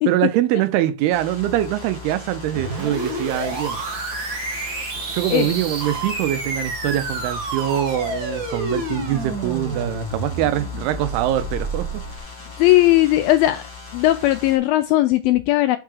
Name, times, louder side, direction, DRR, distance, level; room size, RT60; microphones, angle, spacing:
voice 1, 0.1-3.8 5.1-12.1, right 13 dB, 85° right, 2.7 m, -23 dB
sound 1, 1.1-14.6, left 4 dB, 15° left, 0.9 m, -38 dB
sound 2, 2.5-12.2, right 2 dB, 50° right, 1.5 m, -29 dB
voice 2, 12.6-13.6 13.9-15.8, left 16 dB, 85° left, 2.1 m, -17 dB
5.6 x 4.8 x 6.2 m
omnidirectional pair, 4.5 m